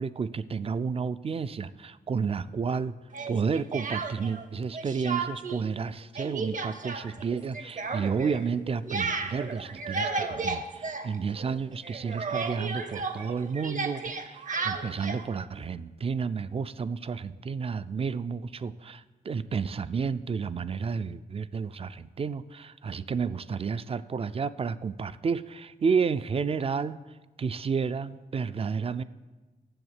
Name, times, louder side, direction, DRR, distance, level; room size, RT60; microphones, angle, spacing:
voice 1, 0.0-2.9 3.3-27.0 27.4-29.0, right 5 dB, 40° right, 15 dB, 0.3 m, -31 dB
Speech, 3.1-4.4 4.7-5.6 5.9-11.6 11.8-15.3, right 4 dB, 55° right, 0.8 m, -33 dB
7.8 x 7.1 x 8.1 m, 1.2 s
wide cardioid pair, 135°, 16 cm